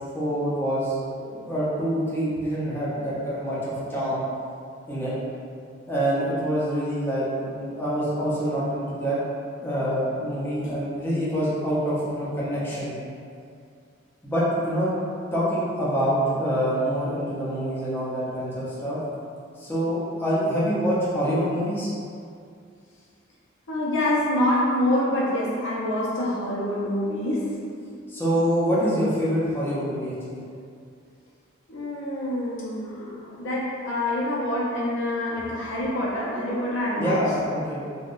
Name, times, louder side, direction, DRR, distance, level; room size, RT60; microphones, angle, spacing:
voice 1, 0.1-4.2 4.9-5.1 5.9-9.2 9.6-12.9 14.2-14.9 15.3-19.0 19.6-21.9 28.1-30.4 37.0-37.8, equal, 10° left, -9 dB, 0.6 m, -26 dB
voice 2, 23.7-27.5 31.7-37.2, left 1 dB, 65° left, -6 dB, 0.6 m, -26 dB
3.5 x 2.2 x 2.4 m, 2.3 s
head